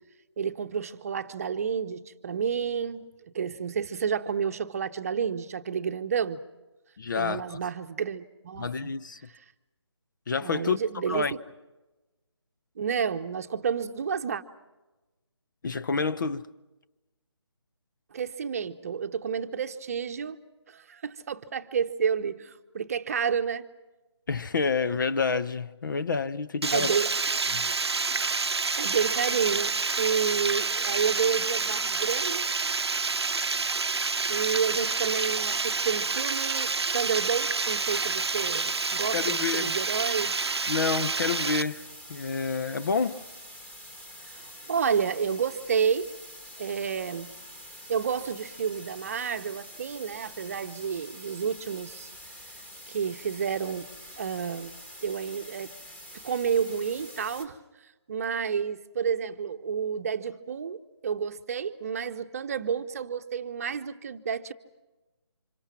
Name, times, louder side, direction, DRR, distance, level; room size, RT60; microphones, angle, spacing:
voice 1, 0.4-3.1 3.3-6.4 7.2-8.9 10.4-11.4 12.8-14.4 18.1-20.4 20.7-23.7 26.7-27.1 28.5-32.5 34.3-40.3 44.3-46.1 46.6-47.3 47.9-52.1 52.9-53.9 54.2-54.7 55.0-55.7 56.2-57.6 58.1-64.5, right 7 dB, 30° right, 1.0 m, -30 dB
voice 2, 7.0-7.6 8.6-9.2 10.3-10.8 11.1-11.3 15.6-16.5 24.3-27.0 27.5-27.7 39.1-39.7 40.7-43.2, left 5 dB, 45° left, 0.9 m, -28 dB
Water, 26.6-41.6, right 4 dB, 65° right, 0.8 m, -28 dB
sound 1, 37.8-57.5, equal, 10° left, 2.0 m, -46 dB
30.0 x 26.5 x 5.9 m
figure-of-eight pair, 150°, 15 cm